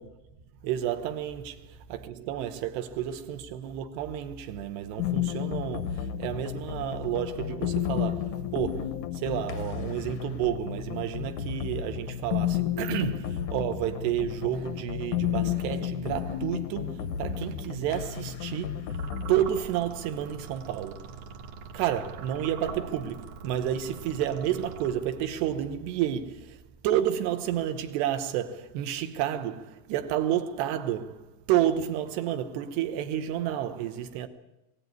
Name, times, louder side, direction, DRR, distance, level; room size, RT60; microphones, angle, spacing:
voice 1, 0.6-19.0 19.3-34.3, right 11 dB, 75° right, 3.0 m, -30 dB
sound 1, 5.0-19.5, left 10 dB, 80° left, 1.8 m, -32 dB
sound 2, 18.9-25.4, right 5 dB, 50° right, 2.8 m, -43 dB
22.0 x 16.5 x 9.4 m
omnidirectional pair, 5.1 m